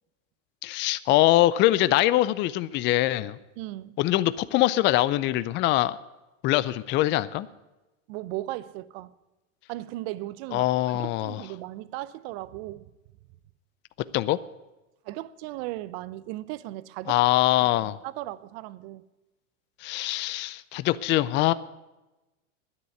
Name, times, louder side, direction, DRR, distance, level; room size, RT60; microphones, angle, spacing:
voice 1, 0.6-3.4 4.0-6.0 6.4-7.5 10.5-11.4 14.1-14.4 17.1-18.0 19.8-21.5, left 16 dB, 30° left, 0.5 m, -23 dB
voice 2, 3.6-4.0 8.1-9.1 9.7-12.9 15.1-17.2 17.6-19.0, right 16 dB, 55° right, 0.8 m, -37 dB
10.5 x 9.8 x 9.3 m
supercardioid pair, 125°, 38 cm